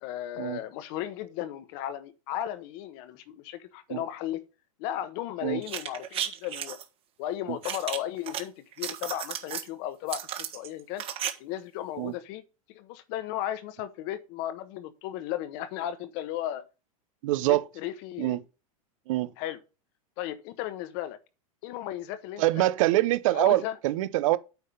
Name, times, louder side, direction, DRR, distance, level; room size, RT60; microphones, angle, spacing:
voice 1, 0.0-4.4 4.8-6.8 7.2-10.2 10.5-11.0 11.4-12.4 12.7-16.6 17.5-18.4 19.4-19.6 20.2-21.2 21.6-22.7 23.3-23.7, left 12 dB, 50° left, 1.2 m, -35 dB
sound 1, 5.6-6.8 7.6-8.4 8.7-9.7 10.1-11.3 11.6-11.7, right 10 dB, 30° right, 1.3 m, -34 dB
voice 2, 17.2-17.6 18.2-18.4 19.1-19.3 22.4-24.4, right 17 dB, 60° right, 0.8 m, -25 dB
9.1 x 3.7 x 6.9 m
supercardioid pair, 140°, 19 cm